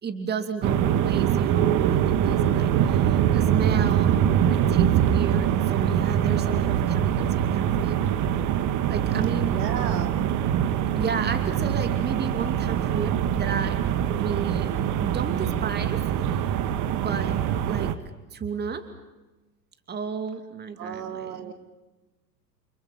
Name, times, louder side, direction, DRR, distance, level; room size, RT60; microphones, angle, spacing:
voice 1, 0.0-8.0 8.9-9.5 11.0-13.8 14.0-14.7 15.0-16.0 16.9-17.4 17.7-17.9 18.3-18.8 19.9-21.5, right 6 dB, 20° right, 8 dB, 2.6 m, -32 dB
sound 1, 0.6-17.9, right 9 dB, 35° right, 1.8 m, -23 dB
voice 2, 9.5-10.2 20.8-21.5, right 7 dB, 65° right, 5 dB, 3.6 m, -33 dB
29.5 x 29.0 x 5.8 m, 1.1 s
figure-of-eight pair, 90°, 50 cm